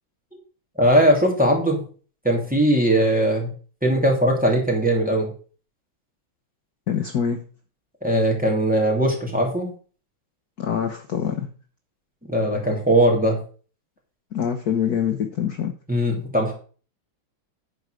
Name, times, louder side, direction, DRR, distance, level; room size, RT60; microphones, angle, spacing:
voice 1, 0.8-1.8 2.2-3.5 3.8-5.3 8.0-9.7 12.3-13.4 15.9-16.5, right 1 dB, 5° right, -1 dB, 2.5 m, -19 dB
voice 2, 6.9-7.4 10.6-11.5 14.3-15.7, left 8 dB, 55° left, 6 dB, 1.2 m, -25 dB
11.0 x 4.7 x 6.2 m, 0.40 s
omnidirectional pair, 2.3 m